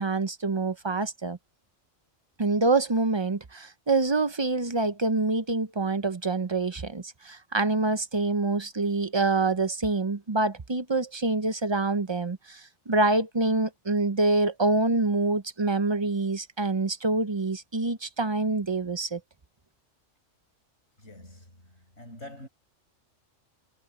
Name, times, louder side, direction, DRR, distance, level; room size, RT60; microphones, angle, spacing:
voice 1, 0.0-1.4 2.4-19.2, right 3 dB, 30° right, 0.6 m, -26 dB
voice 2, 21.0-22.5, left 1 dB, 65° left, 8.2 m, -46 dB
omnidirectional pair, 1.3 m